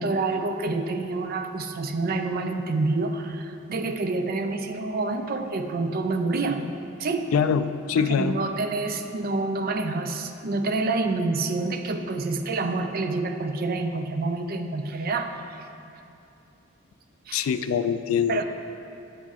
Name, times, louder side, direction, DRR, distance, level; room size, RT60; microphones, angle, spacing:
voice 1, 0.0-6.7 7.0-7.4 7.9-15.4 17.3-17.5 18.3-18.5, right 3 dB, 45° right, 7 dB, 0.4 m, -27 dB
voice 2, 7.3-8.4 17.3-18.5, left 7 dB, 70° left, 11 dB, 0.3 m, -24 dB
8.6 x 6.1 x 4.0 m, 2.7 s
head